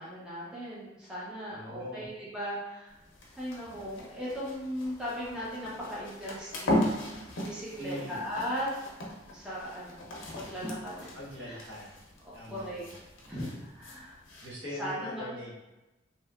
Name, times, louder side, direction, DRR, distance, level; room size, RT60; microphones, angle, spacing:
voice 1, 0.0-2.9 3.4-6.9 7.4-8.7 9.2-10.1 10.4-11.2 11.4-11.6 12.2-12.8 13.3-14.2 14.8-15.3, equal, 5° right, -8 dB, 0.5 m, -38 dB
voice 2, 1.5-2.0 7.8-8.2 11.1-11.9 12.3-13.0 14.4-15.5, left 1 dB, 65° right, -7 dB, 1.0 m, -42 dB
sound 1, 2.9-14.5, left 1 dB, 80° left, 0.6 m, -37 dB
2.7 x 2.2 x 2.3 m, 1.0 s
head